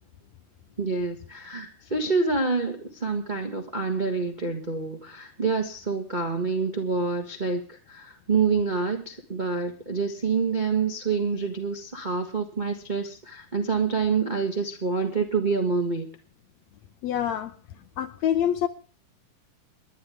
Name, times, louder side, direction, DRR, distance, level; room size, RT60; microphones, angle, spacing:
voice 1, 0.8-16.1, right 4 dB, 35° right, 0.6 m, -27 dB
voice 2, 17.0-18.7, left 10 dB, 70° left, 1.8 m, -27 dB
28.5 x 11.0 x 3.5 m
omnidirectional pair, 3.8 m